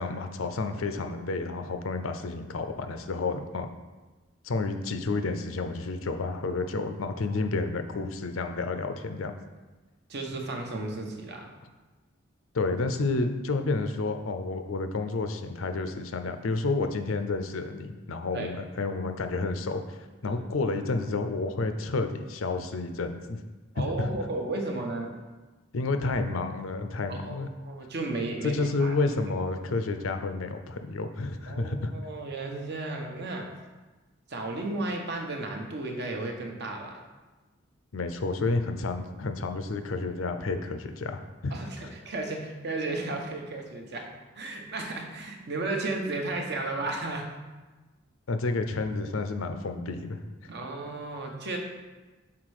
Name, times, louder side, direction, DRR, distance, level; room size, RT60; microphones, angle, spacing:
voice 1, 0.0-3.7 4.4-9.3 12.5-23.4 23.8-24.1 25.7-27.5 28.4-31.9 37.9-41.5 41.8-41.9 48.3-50.5, left 3 dB, 80° left, 7 dB, 0.6 m, -30 dB
voice 2, 10.1-11.5 18.3-18.5 20.2-20.4 23.7-25.1 27.1-28.9 31.5-33.5 34.3-37.0 41.5-44.1 44.4-47.3 50.5-51.6, right 2 dB, 55° right, 2 dB, 0.9 m, -34 dB
5.8 x 4.2 x 4.8 m, 1.2 s
head